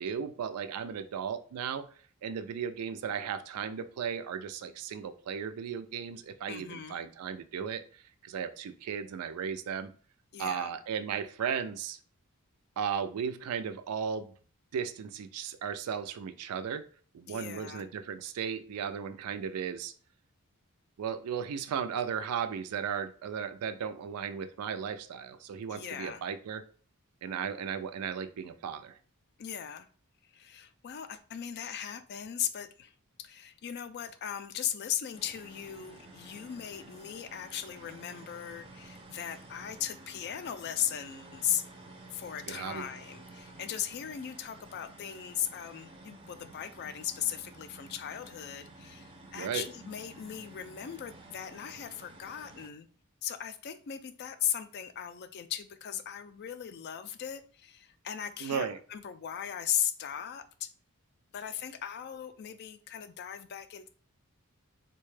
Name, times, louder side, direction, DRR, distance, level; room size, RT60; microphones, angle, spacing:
voice 1, 0.0-1.9 2.2-9.9 10.4-12.0 12.8-14.3 14.7-16.8 17.1-19.9 21.0-26.6 27.2-29.0 42.5-42.9 49.3-49.6 58.4-58.8, right 7 dB, 85° right, 10 dB, 0.4 m, -35 dB
voice 2, 6.5-7.0 10.3-10.7 17.3-17.9 25.7-26.2 29.4-29.9 30.3-32.9 33.2-41.6 42.1-52.9 53.2-60.7 61.3-63.9, left 10 dB, 45° left, 11 dB, 0.3 m, -37 dB
sound 1, 35.1-52.7, right 2 dB, 25° right, 0.4 m, -52 dB
4.0 x 2.2 x 3.2 m, 0.41 s
head